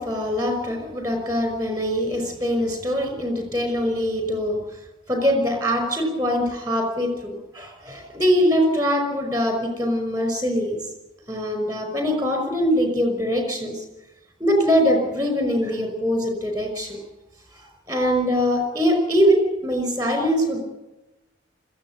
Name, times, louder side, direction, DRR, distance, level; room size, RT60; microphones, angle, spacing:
voice 1, 0.0-4.6 5.1-10.8 11.3-13.8 14.4-17.0 17.6-20.6, equal, 20° right, 5 dB, 5.3 m, -23 dB
21.0 x 15.0 x 10.0 m, 1.0 s
head